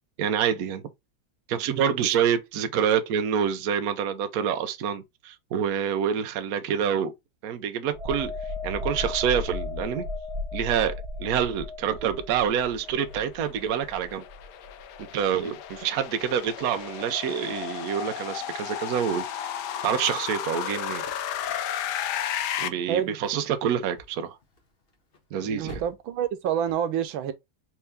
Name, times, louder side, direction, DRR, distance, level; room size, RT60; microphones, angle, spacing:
voice 1, 0.2-0.8 1.5-7.1 7.4-8.3 8.6-10.0 10.5-14.2 15.0-19.2 19.8-21.0 22.6-24.4 25.3-25.8, right 8 dB, 65° right, 1.0 m, -27 dB
sound 1, 7.9-15.4 15.7-15.9, left 2 dB, 25° right, 0.6 m, -36 dB
sound 2, 13.1-22.7, left 10 dB, 70° left, 1.1 m, -33 dB
sound 3, 20.9-26.7, equal, 35° left, 1.0 m, -51 dB
voice 2, 25.5-27.3, right 9 dB, 90° right, 1.5 m, -27 dB
4.4 x 2.7 x 3.3 m
omnidirectional pair, 2.1 m